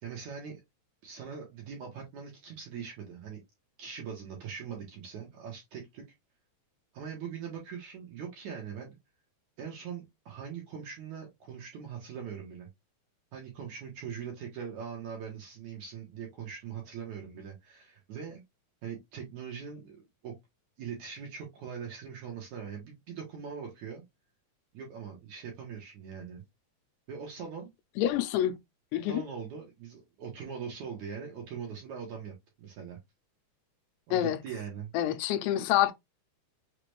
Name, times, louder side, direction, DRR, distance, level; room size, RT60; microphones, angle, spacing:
voice 1, 0.0-0.6 1.0-3.4 3.8-6.0 6.9-9.0 9.6-12.7 13.3-18.4 18.8-20.3 20.8-24.0 24.7-26.4 27.1-27.7 29.1-32.3 32.6-33.0 34.1-34.9, right 7 dB, 65° right, 1.9 m, -41 dB
voice 2, 28.0-28.6 28.9-29.2 34.1-34.4 34.9-35.9, left 12 dB, 90° left, 2.8 m, -27 dB
6.6 x 2.5 x 3.2 m
omnidirectional pair, 4.8 m